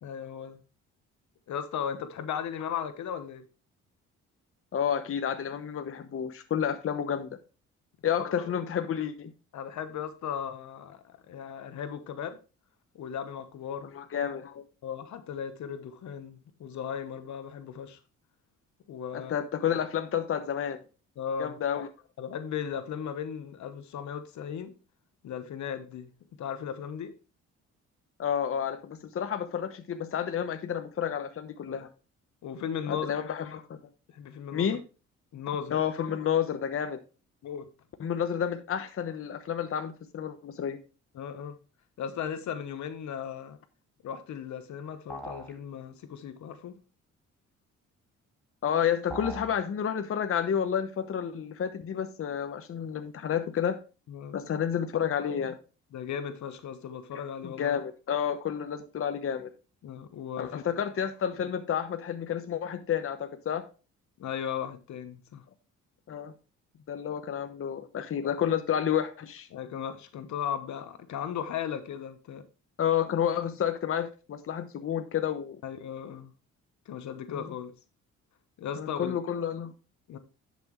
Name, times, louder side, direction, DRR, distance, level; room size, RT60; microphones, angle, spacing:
voice 1, 0.0-0.6 1.5-3.4 8.2-8.5 9.5-12.4 12.9-13.9 14.8-18.0 18.9-19.3 21.2-21.6 22.2-24.7 25.2-26.1 26.4-27.1 31.7-31.8 32.4-33.1 34.1-34.8 35.3-35.8 37.4-37.7 41.1-41.6 42.0-43.6 44.0-46.7 54.1-54.4 55.9-57.8 59.8-60.6 64.2-65.4 68.2-68.4 69.5-72.4 75.6-76.3 76.9-77.7 78.6-79.2 80.1-80.2, left 8 dB, 70° left, 1.1 m, -36 dB
voice 2, 4.7-7.3 8.0-9.3 13.9-14.6 19.1-20.8 21.4-21.9 28.2-31.9 32.9-33.6 34.5-34.8 35.7-37.0 38.0-40.8 48.6-53.8 54.3-55.6 57.4-59.5 60.4-63.7 66.1-66.3 66.9-69.5 72.8-75.6 77.3-77.5 78.8-79.7, left 8 dB, 45° left, 1.0 m, -30 dB
sound 1, 45.1-45.6 49.1-49.6, right 2 dB, 5° left, 1.8 m, -40 dB
10.5 x 6.0 x 3.1 m
cardioid pair, 90°, 30 cm